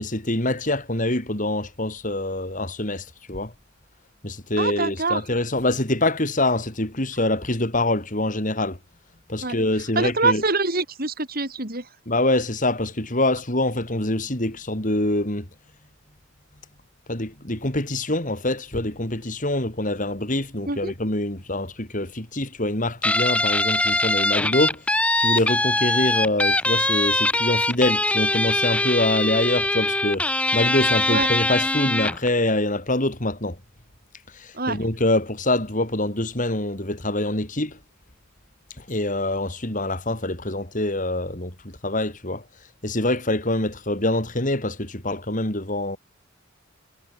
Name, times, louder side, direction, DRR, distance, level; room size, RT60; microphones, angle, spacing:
voice 1, 0.0-3.5 4.2-8.8 9.3-10.4 12.1-15.5 17.1-24.8 25.2-30.2 30.5-33.6 34.3-37.8 38.8-42.4 42.8-46.0, left 1 dB, 40° left, 4.2 m, -25 dB
voice 2, 4.6-5.2 9.4-9.6 10.0-11.8 20.7-20.9 31.1-31.3 34.5-34.8, right 3 dB, 45° right, 6.8 m, -24 dB
Guitar, 23.0-32.3, left 2 dB, 5° left, 1.2 m, -22 dB
head